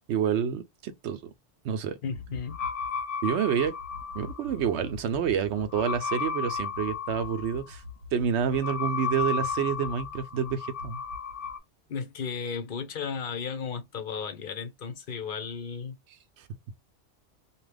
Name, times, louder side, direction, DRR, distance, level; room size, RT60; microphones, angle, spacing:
voice 1, 0.1-1.3 1.6-2.0 3.2-3.8 4.1-7.8 8.1-11.0 16.4-16.5, right 8 dB, 75° right, 0.9 m, -28 dB
voice 2, 2.0-2.6 11.9-16.0, left 6 dB, 50° left, 0.9 m, -34 dB
sound 1, 2.1-11.6, left 5 dB, 90° left, 1.3 m, -34 dB
2.8 x 2.4 x 3.3 m
omnidirectional pair, 1.2 m